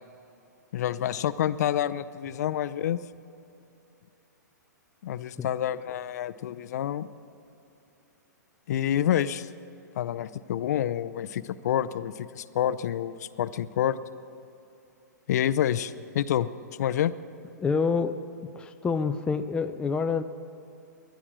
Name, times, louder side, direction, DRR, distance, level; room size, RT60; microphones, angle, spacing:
voice 1, 0.7-3.0 5.0-7.1 8.7-9.5 10.0-14.0 15.3-16.5 16.8-17.1, left 10 dB, 60° left, 14 dB, 0.5 m, -28 dB
voice 2, 17.6-18.1 18.6-20.2, left 5 dB, 10° left, 8 dB, 0.4 m, -27 dB
18.5 x 11.5 x 6.1 m, 2.8 s
hypercardioid pair, 140°, 10 cm